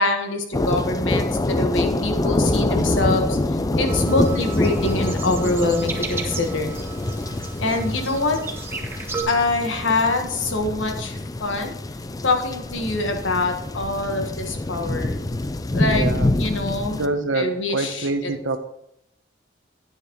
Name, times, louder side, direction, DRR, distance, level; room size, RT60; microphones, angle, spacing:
voice 1, 0.0-3.4 3.7-6.8 7.6-8.4 9.3-11.7 12.2-15.2 15.7-16.1 16.4-17.0 17.3-18.3, left 2 dB, 75° left, 4 dB, 1.4 m, -24 dB
sound 1, 0.5-17.1, left 2 dB, 20° left, 0.4 m, -25 dB
sound 2, 3.9-9.2, right 3 dB, 15° right, 1.0 m, -34 dB
voice 2, 15.7-16.3 16.9-18.6, right 2 dB, 80° right, 8 dB, 0.9 m, -26 dB
9.8 x 8.9 x 3.1 m, 0.79 s
head